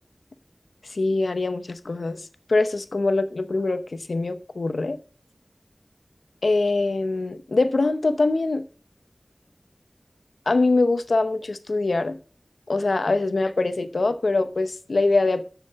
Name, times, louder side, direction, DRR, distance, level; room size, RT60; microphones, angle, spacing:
voice 1, 0.9-2.2 2.5-5.0 6.4-8.6 10.5-12.2 12.7-15.4, left 3 dB, 85° left, 0.8 m, -23 dB
7.5 x 7.1 x 5.3 m
wide cardioid pair, 45°, 0 cm